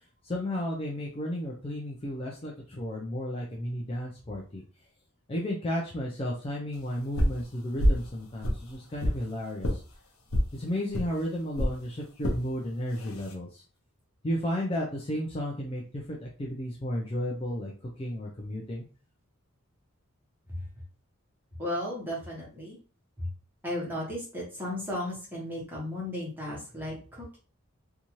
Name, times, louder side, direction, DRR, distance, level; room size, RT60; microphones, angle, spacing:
voice 1, 0.2-4.6 5.3-9.8 10.5-13.6 14.2-17.7 18.0-18.9, equal, 25° left, -2 dB, 0.4 m, -33 dB
sound 1, 7.2-7.4 7.8-8.1 8.4-9.2 9.6-9.8 10.3-10.5 10.9-11.1 11.6-11.8 12.2-12.4 13.0-13.3, equal, 75° left, 0.7 m, -26 dB
voice 2, 21.6-22.8 23.2-23.3 23.6-27.4, left 1 dB, 10° right, -5 dB, 1.1 m, -35 dB
2.7 x 2.3 x 3.0 m, 0.37 s
head